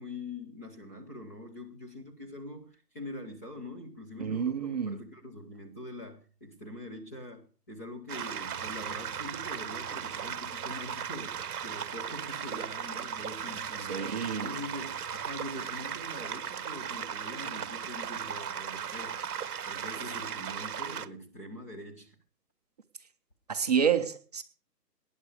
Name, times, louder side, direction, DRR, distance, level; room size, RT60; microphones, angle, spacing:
voice 1, 0.0-19.2 19.7-22.1, left 1 dB, 10° left, 0.6 m, -44 dB
voice 2, 4.2-5.0 13.9-14.5 23.5-24.4, right 7 dB, 25° right, 0.7 m, -29 dB
sound 1, 8.1-21.1, right 8 dB, 65° right, 1.0 m, -37 dB
19.0 x 10.0 x 4.9 m
hypercardioid pair, 150°, 49 cm